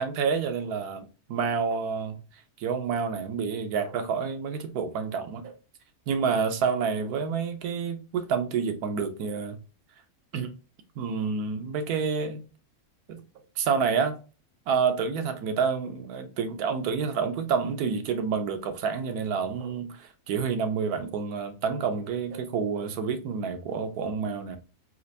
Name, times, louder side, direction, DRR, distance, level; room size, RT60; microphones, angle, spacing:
voice 1, 0.0-2.2 2.6-5.5 6.1-9.6 10.3-10.5 11.0-12.4 13.1-13.2 13.6-14.2 14.7-24.6, right 6 dB, 85° right, 1.2 m, -28 dB
4.4 x 2.5 x 2.7 m
omnidirectional pair, 1.6 m